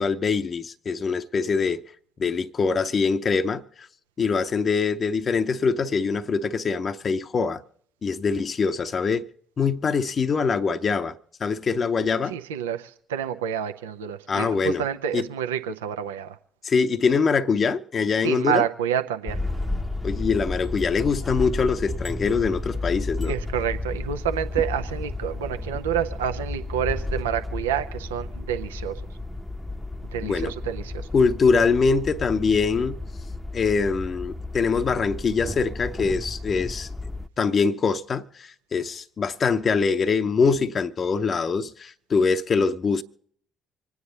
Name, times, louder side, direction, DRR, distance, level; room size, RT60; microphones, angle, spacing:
voice 1, 0.0-1.8 2.2-3.9 4.2-7.6 8.0-9.3 9.6-12.4 14.3-14.8 15.1-15.2 16.6-18.6 20.0-23.3 30.2-30.5 31.1-33.0 33.5-36.9 37.4-43.0, left 5 dB, 45° left, 0.7 m, -23 dB
voice 2, 12.3-16.4 18.2-19.4 23.2-29.0 30.1-31.1, right 9 dB, 80° right, 0.6 m, -28 dB
sound 1, 19.3-37.3, left 2 dB, 5° left, 0.7 m, -32 dB
25.5 x 9.6 x 4.0 m
figure-of-eight pair, 45°, 0 cm